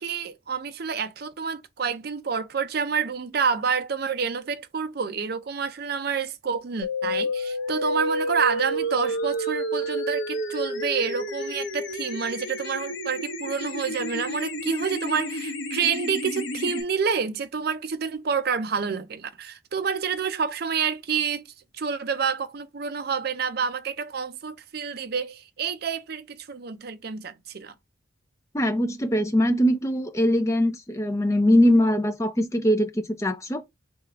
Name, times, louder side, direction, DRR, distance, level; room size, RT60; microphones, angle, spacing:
voice 1, 0.0-21.4 21.7-27.7, right 6 dB, 50° right, 0.5 m, -28 dB
sound 1, 6.8-16.8, equal, 65° left, 0.9 m, -30 dB
voice 2, 28.5-33.6, equal, 15° left, 0.4 m, -22 dB
3.5 x 3.3 x 3.5 m
head